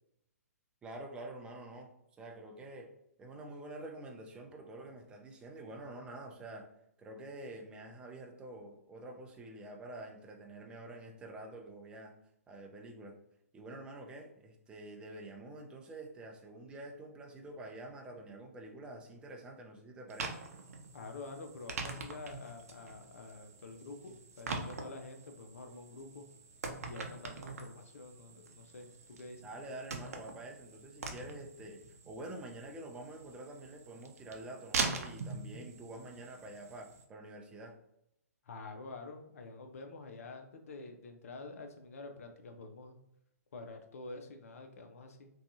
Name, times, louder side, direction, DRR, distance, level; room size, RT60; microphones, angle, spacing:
voice 1, 0.8-2.9 3.2-6.7 7.0-12.1 12.5-13.2 13.5-20.4 29.4-37.8, right 2 dB, 10° right, 1 dB, 0.4 m, -47 dB
sound 1, 20.1-37.0, right 4 dB, 65° right, 0.5 m, -43 dB
voice 2, 20.9-26.3 26.8-29.4 38.4-43.0 43.5-45.3, left 3 dB, 60° left, 5 dB, 0.6 m, -48 dB
2.7 x 2.3 x 2.6 m, 0.79 s
figure-of-eight pair, 130°, 9 cm